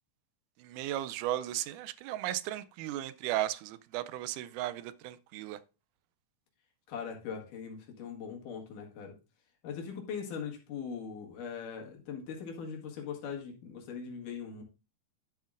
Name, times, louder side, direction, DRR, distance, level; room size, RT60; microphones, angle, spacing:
voice 1, 0.6-5.6, right 13 dB, 80° right, 2.0 m, -35 dB
voice 2, 6.9-9.2 9.6-14.6, left 6 dB, 75° left, 3.2 m, -40 dB
11.5 x 7.3 x 2.5 m
omnidirectional pair, 3.7 m